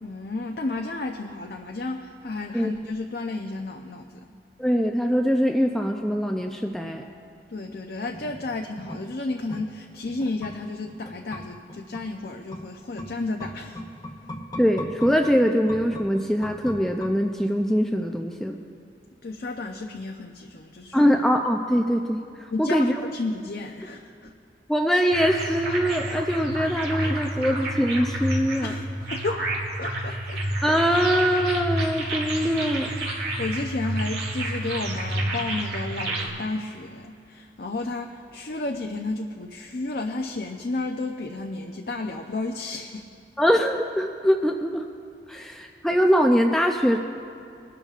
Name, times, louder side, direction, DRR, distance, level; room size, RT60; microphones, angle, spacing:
voice 1, 0.0-4.3 7.5-13.8 19.2-21.1 22.5-24.3 28.6-29.4 29.8-30.4 33.2-43.0 45.3-45.4, left 2 dB, 55° left, 3 dB, 0.6 m, -32 dB
voice 2, 4.6-7.0 14.6-18.6 20.9-22.2 22.6-22.9 24.7-28.7 30.6-32.9 43.4-44.9 45.3-47.0, equal, 5° left, 2 dB, 0.4 m, -22 dB
sound 1, 8.1-17.7 18.0-18.1, left 1 dB, 20° left, 0.9 m, -40 dB
sound 2, 25.1-36.3, right 1 dB, 65° right, 2.1 m, -29 dB
21.5 x 12.5 x 2.5 m, 2.5 s
head